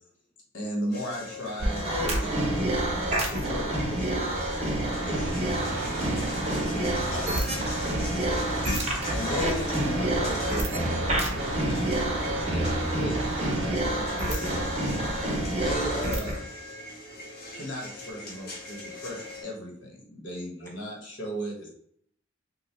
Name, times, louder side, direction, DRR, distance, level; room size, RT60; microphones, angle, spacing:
voice 1, 0.5-5.3 6.3-7.2 9.1-14.7 15.5-16.4 17.5-21.7, equal, 75° left, -2 dB, 1.1 m, -37 dB
sound 1, 0.9-19.4, left 2 dB, 55° left, 0.7 m, -41 dB
sound 2, 1.6-16.4, right 1 dB, 35° right, 0.6 m, -28 dB
sound 3, 5.0-13.8, right 3 dB, 85° right, 0.5 m, -37 dB
voice 2, 7.3-8.1, left 2 dB, 10° left, 0 dB, 0.4 m, -48 dB
2.8 x 2.2 x 3.3 m, 0.67 s
head